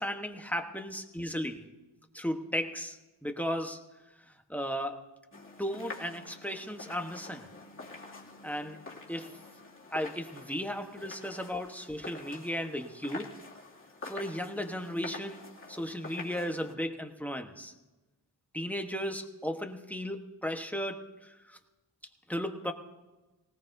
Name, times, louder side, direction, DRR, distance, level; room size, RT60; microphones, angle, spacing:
voice 1, 0.0-1.6 2.1-3.0 3.2-3.8 4.5-5.0 5.6-7.5 8.4-8.8 9.1-9.3 9.9-13.3 14.0-15.4 15.7-17.7 18.5-21.6 22.3-22.7, equal, 5° left, 5 dB, 1.2 m, -35 dB
sound 1, 5.3-16.7, left 3 dB, 30° left, 2.5 m, -47 dB
19.0 x 18.5 x 2.7 m, 1.1 s
wide cardioid pair, 65°, 40 cm